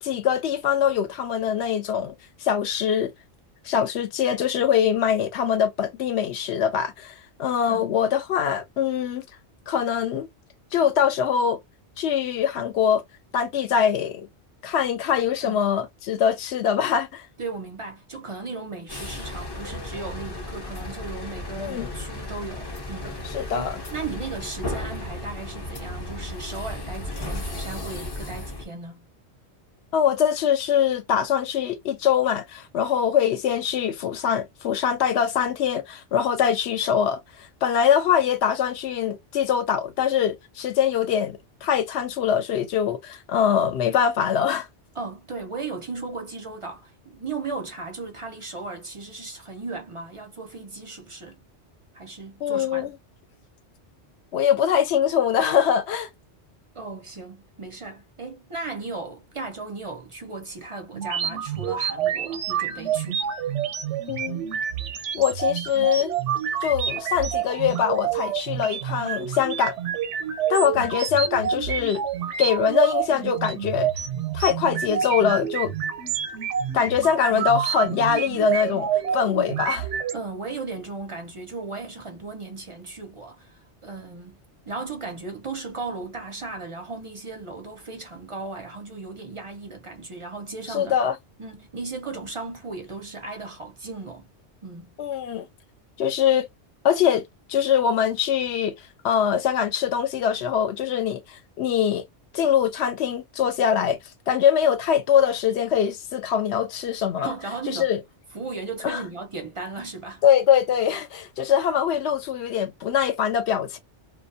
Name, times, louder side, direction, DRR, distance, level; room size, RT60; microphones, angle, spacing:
voice 1, 0.0-2.1 2.4-3.1 3.6-9.2 9.7-10.3 10.7-11.6 12.0-13.0 13.3-14.3 14.6-17.3 21.6-21.9 23.3-23.8 29.9-44.7 52.4-52.9 54.3-56.1 64.1-64.5 65.1-66.1 66.6-69.7 70.5-72.0 72.4-73.9 74.3-75.7 76.7-79.9 90.7-91.2 95.0-95.5 96.0-96.5 96.8-98.7 99.0-102.0 102.3-104.0 104.3-107.3 107.7-108.0 108.8-109.0 110.2-113.8, left 8 dB, 70° left, 0.8 m, -23 dB
voice 2, 17.4-23.2 23.5-29.0 44.9-51.4 51.9-52.9 56.7-63.2 70.7-71.0 80.1-84.4 84.7-91.0 91.4-94.3 94.6-94.9 107.2-107.9 108.3-110.2, right 3 dB, 40° right, 0.5 m, -36 dB
sound 1, 18.9-28.7, left 1 dB, 30° left, 0.5 m, -34 dB
sound 2, 60.9-80.1, right 9 dB, 85° right, 0.9 m, -28 dB
2.5 x 2.2 x 2.5 m
omnidirectional pair, 1.2 m